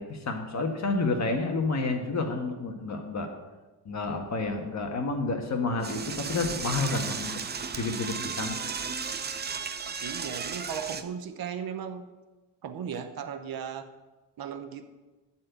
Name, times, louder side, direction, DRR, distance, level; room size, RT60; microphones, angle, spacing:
voice 1, 0.0-3.3 3.8-7.3 7.7-8.6, left 3 dB, 40° left, 4 dB, 1.5 m, -30 dB
Door / Toilet flush, 5.8-11.0, right 5 dB, 25° right, 0.5 m, -34 dB
voice 2, 10.0-12.1 12.6-13.9 14.4-14.8, right 7 dB, 55° right, 8 dB, 0.9 m, -36 dB
12.0 x 4.4 x 8.2 m, 1.2 s
cardioid pair, 135°, 42 cm